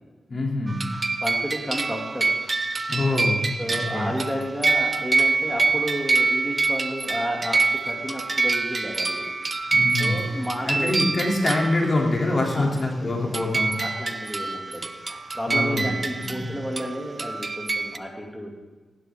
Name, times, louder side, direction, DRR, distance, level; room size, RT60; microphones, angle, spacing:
voice 1, 0.3-0.9 2.9-4.1 9.7-10.2 10.6-13.8 15.5-15.9 16.2-16.5, left 2 dB, 40° left, -1 dB, 2.9 m, -25 dB
sound 1, 0.7-12.3 12.8-12.9 13.3-18.0, right 3 dB, 35° right, 0.6 m, -26 dB
voice 2, 0.9-2.3 2.8-3.0 3.6-9.3 9.6-9.7 10.0-10.9 12.5-12.7 13.3-13.4 13.8-18.6, equal, ahead, -1 dB, 2.5 m, -32 dB
16.0 x 11.5 x 3.7 m, 1.3 s
cardioid pair, 80°, 0 cm